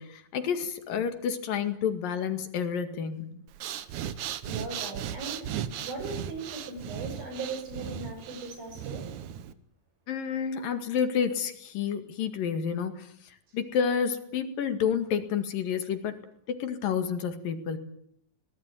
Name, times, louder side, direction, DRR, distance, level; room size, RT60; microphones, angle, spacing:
voice 1, 0.0-3.3 10.1-16.2 16.5-17.8, left 7 dB, 75° left, 8 dB, 3.7 m, -30 dB
Breathing, 3.5-9.5, right 10 dB, 65° right, 2.3 m, -37 dB
voice 2, 4.4-5.5 5.8-9.0, right 3 dB, 85° right, 6 dB, 8.2 m, -38 dB
22.0 x 19.0 x 9.2 m, 0.69 s
omnidirectional pair, 4.0 m